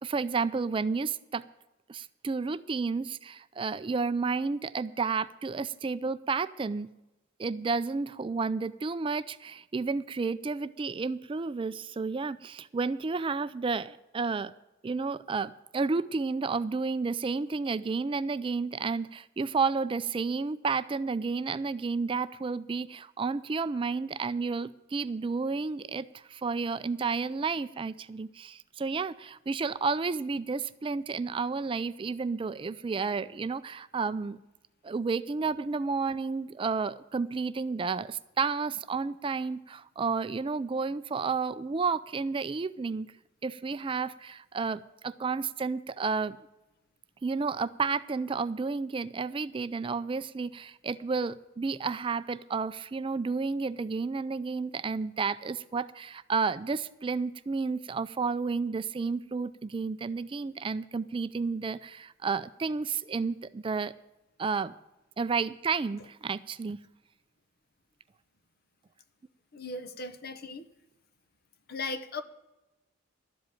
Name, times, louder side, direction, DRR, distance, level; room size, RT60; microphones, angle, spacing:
voice 1, 0.0-1.4 1.9-6.9 7.4-14.5 14.8-34.4 34.8-43.1 43.4-46.4 47.2-63.9 64.4-64.7 65.2-66.8, right 4 dB, 25° right, 14 dB, 0.3 m, -31 dB
voice 2, 69.5-70.6 71.7-72.2, left 3 dB, 50° left, 11 dB, 1.0 m, -37 dB
12.0 x 7.8 x 8.9 m, 0.97 s
head